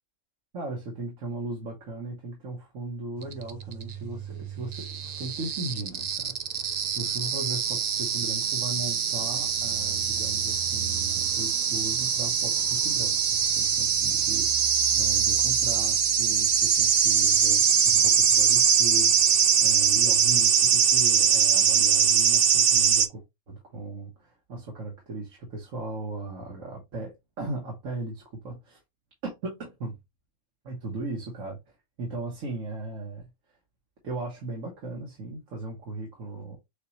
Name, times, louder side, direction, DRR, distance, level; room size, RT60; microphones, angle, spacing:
voice 1, 0.5-28.8 29.2-30.0 30.6-33.3 34.0-36.6, right 2 dB, 85° right, 1.7 m, -37 dB
sound 1, 3.3-23.1, right 7 dB, 65° right, 0.4 m, -23 dB
6.6 x 2.4 x 3.0 m
omnidirectional pair, 1.3 m